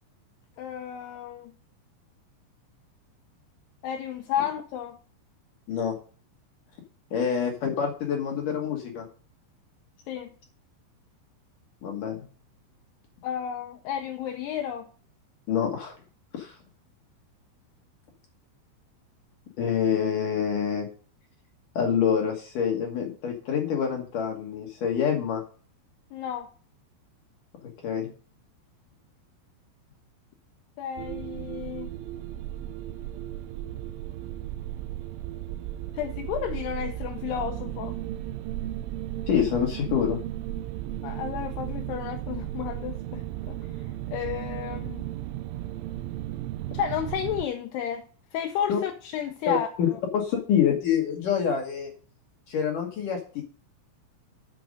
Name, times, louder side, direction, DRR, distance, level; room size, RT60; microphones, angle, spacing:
voice 1, 0.6-1.5 3.8-5.0 10.1-10.3 13.2-14.9 26.1-26.5 30.8-31.9 35.9-38.0 41.0-43.6 44.1-45.0 46.7-48.0 48.3-50.0, left 9 dB, 80° left, 2.4 m, -32 dB
voice 2, 7.1-9.1 11.8-12.2 15.5-15.9 16.3-16.6 19.6-20.9 21.8-25.4 27.6-28.1 39.3-40.2 48.7-48.8 49.5-51.9 52.5-53.4, left 8 dB, 65° left, 2.2 m, -26 dB
sound 1, 31.0-47.5, right 13 dB, 80° right, 3.0 m, -35 dB
9.0 x 6.3 x 5.2 m
omnidirectional pair, 5.5 m